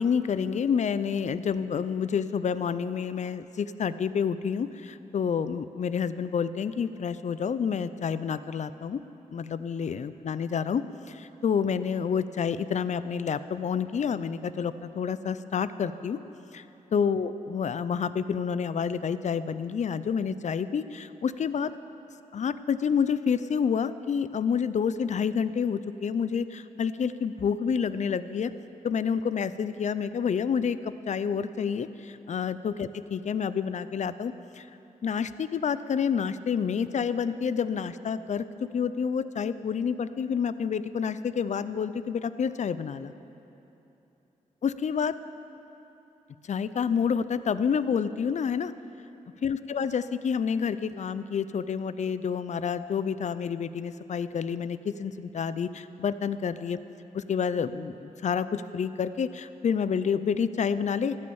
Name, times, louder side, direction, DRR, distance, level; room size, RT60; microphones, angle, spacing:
voice 1, 0.0-9.0 9.3-10.8 11.1-16.2 16.5-16.6 16.9-21.7 22.3-28.5 28.8-34.7 35.0-43.1 44.6-45.1 46.4-48.7 49.4-56.8 57.1-61.2, left 6 dB, 55° left, 14 dB, 0.5 m, -29 dB
14.0 x 9.8 x 7.0 m, 2.9 s
cardioid pair, 75°, 14 cm